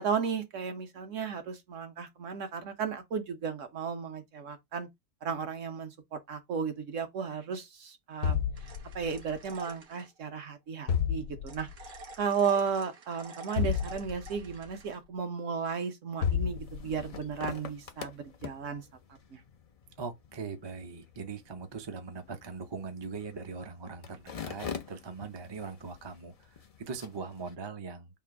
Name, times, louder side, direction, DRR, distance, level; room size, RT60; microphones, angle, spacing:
voice 1, 0.0-4.9 5.2-8.4 8.9-11.7 12.2-18.8 19.3-19.4, right 6 dB, 65° right, 1.2 m, -34 dB
sound 1, 8.2-9.4 10.9-11.8 13.6-14.6 16.2-17.2, left 8 dB, 85° left, 1.1 m, -31 dB
sound 2, 8.6-10.1 11.5-15.0, right 3 dB, 85° right, 1.4 m, -50 dB
sound 3, 16.4-27.5, left 6 dB, 65° left, 0.3 m, -46 dB
voice 2, 20.0-28.1, right 4 dB, 40° right, 0.3 m, -41 dB
3.7 x 2.5 x 4.6 m
omnidirectional pair, 1.5 m